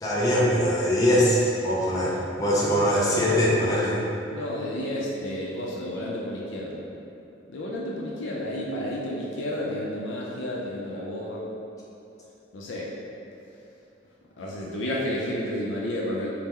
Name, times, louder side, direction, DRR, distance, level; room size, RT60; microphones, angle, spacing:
voice 1, 0.0-4.0, equal, 20° left, -7 dB, 0.5 m, -22 dB
voice 2, 4.3-6.8 7.5-11.5 12.5-12.9 14.4-16.3, left 1 dB, 85° left, -4 dB, 0.4 m, -31 dB
3.6 x 2.0 x 4.2 m, 2.8 s
head